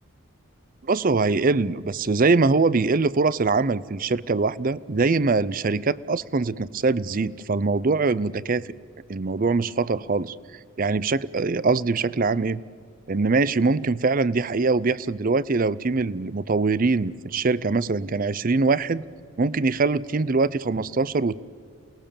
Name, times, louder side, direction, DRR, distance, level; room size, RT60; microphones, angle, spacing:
voice 1, 0.9-8.6 9.1-10.4 10.8-12.6 13.1-19.0 19.4-21.3, right 3 dB, 40° right, 19 dB, 0.5 m, -23 dB
28.5 x 20.0 x 7.1 m, 2.1 s
head